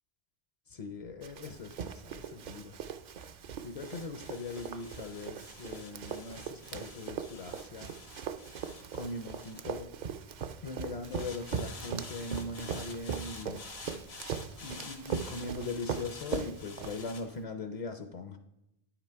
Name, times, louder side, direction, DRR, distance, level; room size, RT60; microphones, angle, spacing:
voice 1, 0.7-2.8 3.6-8.0 8.9-10.1 10.6-13.7 14.6-18.4, left 3 dB, 50° left, 6 dB, 0.5 m, -40 dB
sound 1, 0.9-10.4 11.0-17.2, left 3 dB, 85° left, 1.4 m, -50 dB
Run, 1.2-17.4, right 7 dB, 55° right, 0.5 m, -40 dB
9.1 x 5.9 x 4.5 m, 0.86 s
omnidirectional pair, 1.0 m